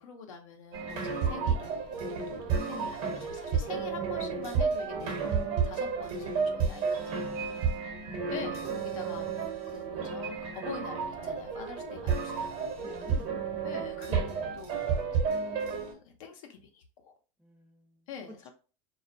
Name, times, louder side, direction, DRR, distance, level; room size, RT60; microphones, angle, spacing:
voice 1, 0.0-7.7 8.3-9.3 9.7-12.5 12.8-12.9 13.6-17.1 18.1-18.5, left 6 dB, 80° left, 4 dB, 0.6 m, -45 dB
sound 1, 0.7-15.9, right 5 dB, 55° right, 0.9 m, -31 dB
voice 2, 2.5-3.0 12.8-13.3 17.4-18.0, equal, 5° right, 2 dB, 0.6 m, -50 dB
2.3 x 2.1 x 2.6 m, 0.35 s
supercardioid pair, 105°, 17 cm